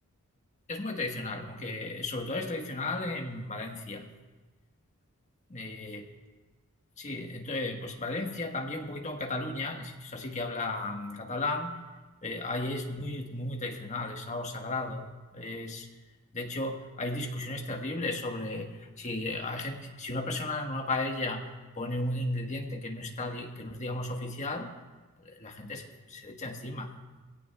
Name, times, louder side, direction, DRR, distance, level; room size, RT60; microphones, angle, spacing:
voice 1, 0.7-4.0 5.5-6.1 7.0-11.8 12.2-15.1 15.3-15.9 16.3-21.5 21.8-24.7 25.2-26.9, left 2 dB, 30° left, 2 dB, 1.4 m, -34 dB
21.0 x 16.5 x 2.3 m, 1.2 s
head